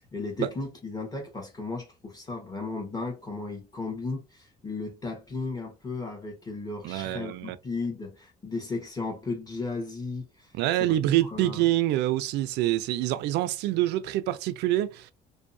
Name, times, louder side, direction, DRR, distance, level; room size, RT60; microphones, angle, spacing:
voice 1, 0.1-10.3 10.8-11.6, left 3 dB, 20° left, 1.0 m, -35 dB
voice 2, 6.8-7.6 10.6-15.1, right 14 dB, 85° right, 0.4 m, -26 dB
2.6 x 2.1 x 2.6 m
cardioid pair, 110°, 17 cm